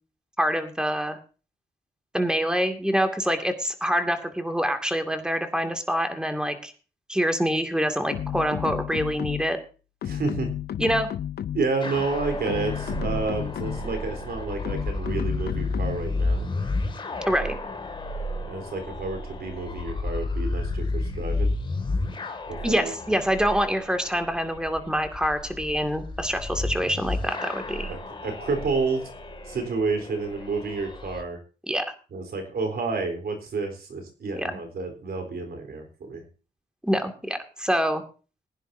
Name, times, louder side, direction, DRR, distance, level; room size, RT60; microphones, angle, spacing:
voice 1, 0.4-1.2 2.1-6.7 7.1-9.6 10.8-11.1 17.3-17.6 22.6-27.9 31.7-31.8 34.4-34.5 36.8-38.0, equal, 5° right, 6 dB, 2.3 m, -26 dB
sound 1, 8.1-9.6 10.0-11.8 12.3-14.0 14.6-16.2, left 10 dB, 70° left, 0.6 m, -32 dB
voice 2, 10.0-10.5 11.5-16.5 18.5-21.5 22.5-23.2 27.9-29.1 29.5-31.4 32.1-36.2, right 4 dB, 70° right, 5 dB, 3.8 m, -30 dB
sound 2, 11.8-31.2, left 2 dB, 30° left, 2.3 m, -32 dB
21.0 x 10.0 x 2.7 m, 0.35 s
cardioid pair, 90°, 17 cm